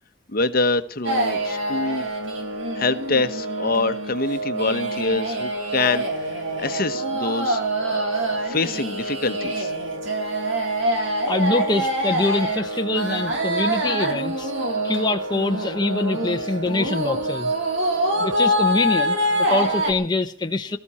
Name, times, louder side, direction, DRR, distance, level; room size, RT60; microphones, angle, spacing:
voice 1, 0.3-2.1 2.7-6.0 6.6-7.6 7.9-8.1 8.5-9.7, left 3 dB, 50° left, 1.1 m, -25 dB
sound 1, 1.0-19.9, right 1 dB, 75° right, 3.8 m, -25 dB
voice 2, 11.0-14.5 14.8-17.5 18.2-20.8, left 2 dB, 20° left, 0.9 m, -24 dB
23.5 x 14.0 x 4.3 m
head